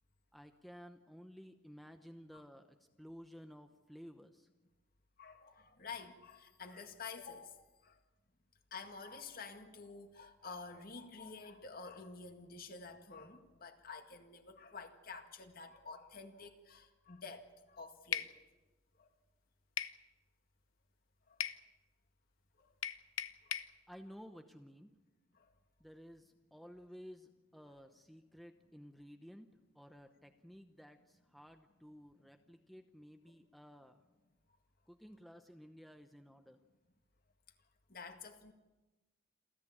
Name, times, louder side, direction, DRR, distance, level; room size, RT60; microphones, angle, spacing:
voice 1, 0.3-4.5 23.9-24.9 25.8-29.5 29.7-34.0 34.9-36.6, equal, ahead, 6 dB, 0.8 m, -55 dB
voice 2, 5.2-8.0 8.7-18.4 19.0-19.1 21.3-21.5 22.6-22.7 23.4-23.6 25.3-25.5 37.9-38.5, left 4 dB, 45° left, 6 dB, 2.0 m, -50 dB
sound 1, 18.1-18.3 19.8-20.0 21.4-21.6 22.8-23.7, left 10 dB, 85° left, 0.9 m, -38 dB
28.0 x 13.5 x 8.7 m, 1.1 s
head